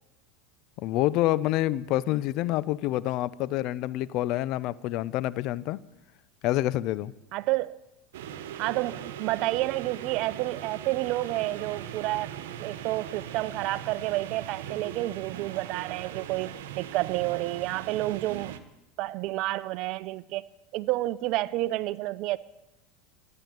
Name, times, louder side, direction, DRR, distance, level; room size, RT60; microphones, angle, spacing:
voice 1, 0.8-5.8 6.4-7.1, left 15 dB, 55° left, 0.6 m, -27 dB
voice 2, 7.3-7.8 8.6-12.3 12.6-18.6 19.0-20.4 20.7-22.4, right 17 dB, 55° right, 0.6 m, -30 dB
sound 1, 8.1-18.6, right 10 dB, 75° right, 1.2 m, -40 dB
13.5 x 9.7 x 9.3 m
hypercardioid pair, 95°, 0 cm